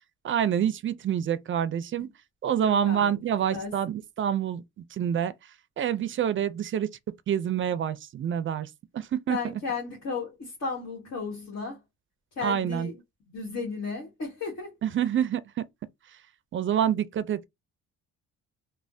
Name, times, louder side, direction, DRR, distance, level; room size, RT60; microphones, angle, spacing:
voice 1, 0.2-2.1 2.4-4.6 4.9-5.3 5.8-6.9 7.3-9.4 12.4-12.9 14.8-15.6 16.5-17.5, right 9 dB, 40° right, 0.4 m, -27 dB
voice 2, 2.6-3.2 3.5-3.7 9.3-11.8 12.4-12.9 13.3-14.8, left 4 dB, 60° left, 1.4 m, -34 dB
3.1 x 2.1 x 2.6 m
cardioid pair, 90°, 30 cm